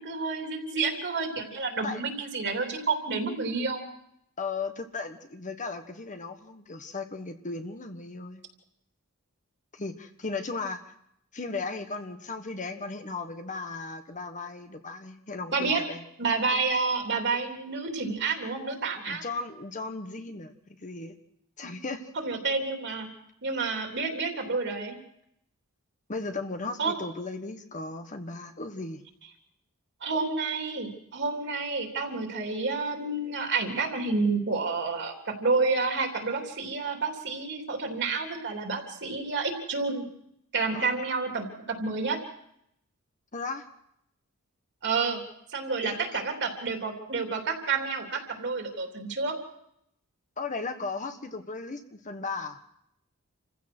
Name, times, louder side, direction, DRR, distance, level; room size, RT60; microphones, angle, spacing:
voice 1, 0.0-3.8 15.5-15.8 16.2-19.3 22.2-23.1 23.4-25.0 26.8-26.9 30.0-40.1 40.5-42.2 44.8-45.2 45.5-49.4, right 4 dB, 55° right, 3 dB, 3.3 m, -29 dB
voice 2, 4.4-8.4 9.7-10.9 11.3-16.0 19.1-20.5 20.8-21.1 21.6-22.1 26.1-29.0 40.7-40.9 43.3-43.6 45.8-46.2 50.4-52.6, left 3 dB, 35° left, 7 dB, 1.4 m, -36 dB
27.5 x 15.5 x 6.2 m, 0.76 s
head